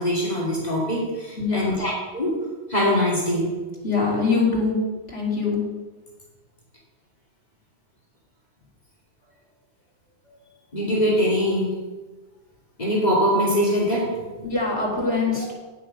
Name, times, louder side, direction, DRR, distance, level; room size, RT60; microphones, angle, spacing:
voice 1, 0.0-2.4 2.7-3.5 10.7-11.8 12.8-14.2, equal, 40° left, -4 dB, 2.7 m, -22 dB
voice 2, 1.4-1.8 3.8-4.8 5.1-5.6 14.4-15.5, left 4 dB, 65° left, -4 dB, 3.2 m, -23 dB
9.5 x 6.8 x 6.6 m, 1.2 s
omnidirectional pair, 1.1 m